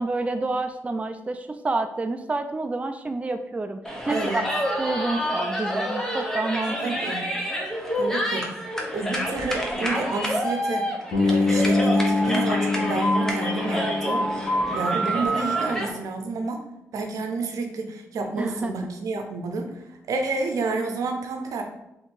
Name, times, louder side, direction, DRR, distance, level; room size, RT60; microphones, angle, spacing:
voice 1, 0.0-3.8 4.1-4.4 4.8-6.8 18.4-18.7, right 2 dB, 25° right, 7 dB, 0.4 m, -28 dB
sound 1, 3.8-15.9, equal, 10° left, 0.9 m, -27 dB
voice 2, 4.1-4.4 6.8-7.2 8.0-8.5 8.9-10.9 11.2-14.3 14.7-16.6 16.9-21.6, right 3 dB, 80° right, 4 dB, 0.6 m, -29 dB
Bass guitar, 11.1-15.2, left 3 dB, 75° left, 1.3 m, -25 dB
3.5 x 2.8 x 4.3 m, 0.88 s
cardioid pair, 65°, 6 cm